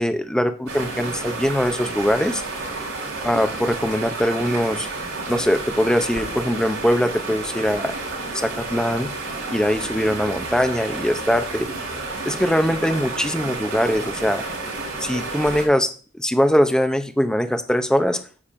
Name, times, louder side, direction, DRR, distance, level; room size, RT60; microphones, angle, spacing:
voice 1, 0.0-2.4 3.2-4.9 5.3-7.9 8.3-9.1 9.5-11.7 12.3-14.4 15.0-15.9 16.2-18.2, equal, 5° left, 8 dB, 0.6 m, -21 dB
sound 1, 0.7-15.7, right 3 dB, 75° right, 3.8 m, -31 dB
9.6 x 7.1 x 2.6 m, 0.38 s
head